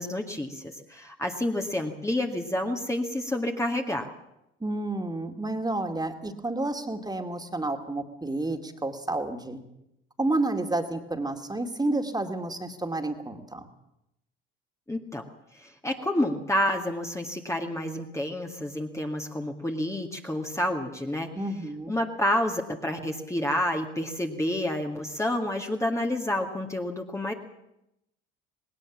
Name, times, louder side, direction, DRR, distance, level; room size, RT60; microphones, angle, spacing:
voice 1, 0.0-4.1 14.9-15.3 15.5-21.3 21.9-27.3, left 1 dB, 10° left, 2 dB, 2.0 m, -29 dB
voice 2, 4.6-9.6 10.2-13.7 21.4-22.0, right 2 dB, 15° right, 6 dB, 2.5 m, -30 dB
19.0 x 18.5 x 7.3 m, 0.84 s
hypercardioid pair, 65°, 30 cm